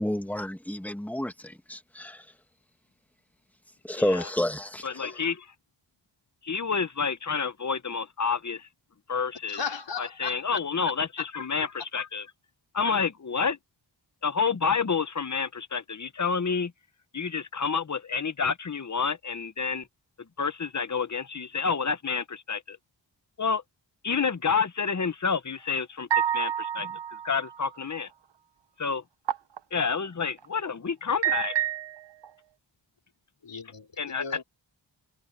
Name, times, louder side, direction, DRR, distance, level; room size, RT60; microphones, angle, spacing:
voice 1, 0.0-2.2 3.8-5.1, left 1 dB, 5° left, 2.1 m, -30 dB
voice 2, 4.0-4.3 4.8-5.5 6.4-8.6 9.1-9.6 10.0-12.3 12.7-13.6 14.2-16.7 17.1-19.8 20.4-22.8 23.4-23.6 24.0-26.1 26.3-27.0 27.2-28.1 28.8-29.0 29.7-31.5 34.0-34.4, left 5 dB, 40° left, 1.3 m, -29 dB
voice 3, 9.5-10.6 11.2-11.3 33.4-34.4, left 6 dB, 65° left, 5.1 m, -36 dB
sound 1, 26.1-27.6 29.3-29.6 30.2-30.5 31.2-32.3, right 10 dB, 65° right, 1.2 m, -28 dB
cardioid pair, 60°, 46 cm